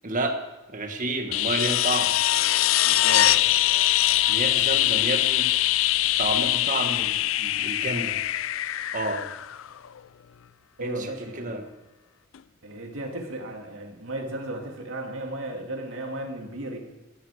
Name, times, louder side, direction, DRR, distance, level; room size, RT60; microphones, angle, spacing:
voice 1, 0.0-0.4 0.7-2.1 4.3-5.5 6.2-8.2 8.9-9.2 10.8-11.7, right 2 dB, 40° right, 5 dB, 1.7 m, -30 dB
sound 1, 1.3-10.0 12.3-12.4, left 14 dB, 70° left, 0.4 m, -23 dB
voice 2, 2.8-3.4 10.8-11.5 12.6-16.8, right 1 dB, 70° right, 2 dB, 2.5 m, -35 dB
15.5 x 13.0 x 5.0 m, 1.1 s
head